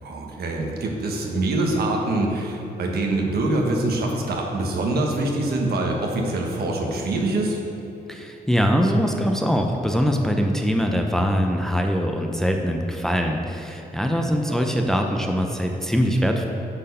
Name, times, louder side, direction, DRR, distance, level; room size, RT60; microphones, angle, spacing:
voice 1, 0.0-7.6 14.5-14.6, right 2 dB, 75° right, 0 dB, 1.3 m, -24 dB
voice 2, 8.1-16.5, equal, 5° left, 3 dB, 0.6 m, -22 dB
8.9 x 4.5 x 5.4 m, 2.9 s
cardioid pair, 100°, 16 cm